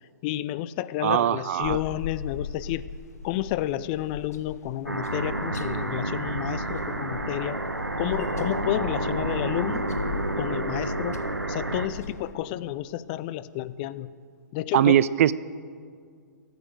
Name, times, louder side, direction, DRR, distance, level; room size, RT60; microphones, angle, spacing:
voice 1, 0.2-2.9 3.2-7.6 8.0-9.9 10.4-11.2 11.5-14.1 14.5-15.0, left 14 dB, 30° left, 16 dB, 0.4 m, -31 dB
voice 2, 1.0-1.8 14.7-15.3, right 11 dB, 45° right, 19 dB, 0.4 m, -21 dB
sound 1, 1.6-12.3, left 6 dB, 55° left, 0.8 m, -40 dB
sound 2, 4.9-11.9, right 2 dB, 90° right, 1.1 m, -30 dB
14.5 x 9.1 x 6.5 m, 2.1 s
figure-of-eight pair, 120°, 10 cm